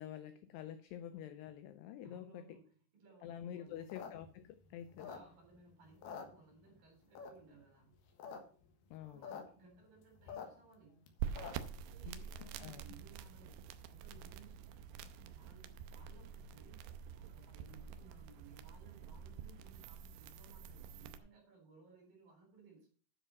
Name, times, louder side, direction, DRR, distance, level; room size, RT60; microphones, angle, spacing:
voice 1, 0.0-2.4 3.2-5.1 8.9-9.4 12.1-12.8, left 10 dB, 85° left, 11 dB, 2.4 m, -48 dB
voice 2, 2.0-3.9 5.0-8.0 8.9-11.0 11.9-15.0 15.3-16.8 17.2-22.9, right 4 dB, 50° right, 1 dB, 5.3 m, -62 dB
sound 1, 3.7-5.6 5.9-6.8 7.1-7.6 8.0-8.4 8.6-8.7 8.9-9.4 9.8-11.8, left 6 dB, 65° left, 3.1 m, -48 dB
sound 2, 11.2-21.2, right 8 dB, 80° right, 2.6 m, -47 dB
10.0 x 6.7 x 5.7 m, 0.43 s
omnidirectional pair, 5.4 m